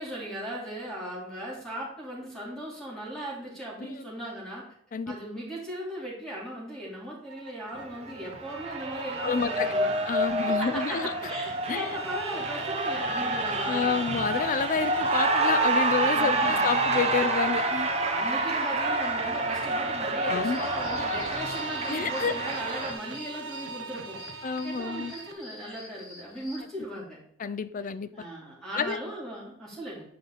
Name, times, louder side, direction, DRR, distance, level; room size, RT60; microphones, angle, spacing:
voice 1, 0.0-4.7 5.1-10.0 10.6-14.0 16.1-16.6 17.9-24.2 24.6-27.2 28.1-30.0, right 1 dB, 5° left, 3.4 m, -38 dB
sound 1, 7.3-25.3, right 3 dB, 70° right, 0.8 m, -39 dB
Cheering, 7.7-22.9, right 2 dB, 30° right, 1.0 m, -28 dB
voice 2, 9.2-9.7 10.0-11.1 11.7-11.9 13.7-17.9 20.3-20.6 21.9-22.3 24.4-25.1 27.4-28.1 28.7-29.0, left 5 dB, 40° left, 0.4 m, -29 dB
sound 2, 20.5-26.6, left 2 dB, 85° left, 2.2 m, -47 dB
8.5 x 5.2 x 4.1 m
head